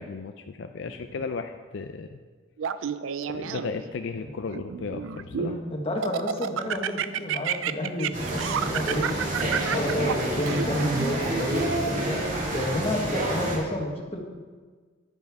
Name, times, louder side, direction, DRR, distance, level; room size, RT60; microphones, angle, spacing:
voice 1, 0.0-2.2 3.3-5.5, left 4 dB, 65° left, 6 dB, 0.4 m, -35 dB
Laughter, 2.6-3.9 4.5-5.6 6.0-11.1, right 8 dB, 85° right, 0.4 m, -30 dB
voice 2, 5.4-14.2, left 1 dB, 30° left, 1 dB, 1.3 m, -30 dB
sound 1, 8.1-13.6, right 1 dB, 40° right, 2.1 m, -29 dB
10.5 x 10.0 x 3.5 m, 1.5 s
head